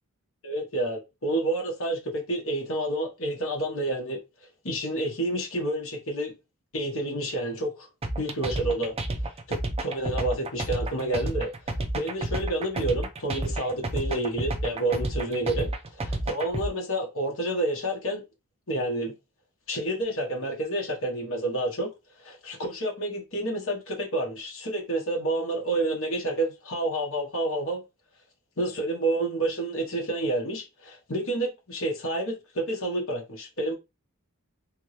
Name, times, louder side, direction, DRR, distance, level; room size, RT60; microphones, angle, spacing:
voice 1, 0.4-4.2 4.6-6.3 6.7-7.9 8.2-9.0 9.5-11.5 11.9-15.7 16.0-18.2 18.7-19.1 19.7-21.9 22.2-27.8 28.6-33.7, right 1 dB, 65° left, 1.4 m, -29 dB
sound 1, 8.0-16.7, right 2 dB, 25° right, 0.5 m, -30 dB
3.5 x 2.9 x 3.2 m
head